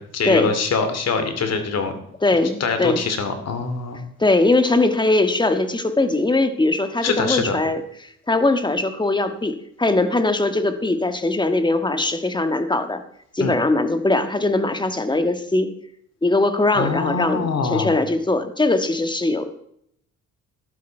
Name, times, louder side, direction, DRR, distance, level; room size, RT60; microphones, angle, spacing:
voice 1, 0.0-1.9 2.6-4.0 7.0-7.6 13.4-13.6 16.7-18.0, left 4 dB, 55° left, 8 dB, 2.5 m, -24 dB
voice 2, 2.2-3.0 4.2-7.8 8.3-13.0 13.3-15.7 16.2-19.5, left 2 dB, 15° left, 8 dB, 1.6 m, -20 dB
12.5 x 12.0 x 4.5 m, 0.71 s
cardioid pair, 90°, 30 cm